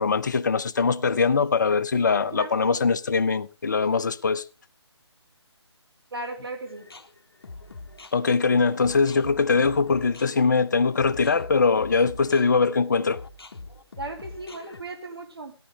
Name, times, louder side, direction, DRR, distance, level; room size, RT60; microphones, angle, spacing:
voice 1, 0.0-4.4 8.1-13.2, left 4 dB, 40° left, 0.7 m, -22 dB
voice 2, 2.1-2.8 6.1-6.9 14.0-15.5, right 2 dB, 60° right, 2.5 m, -37 dB
sound 1, 6.7-14.8, left 3 dB, 55° left, 1.4 m, -43 dB
16.5 x 11.0 x 3.4 m
figure-of-eight pair, 150°, 15 cm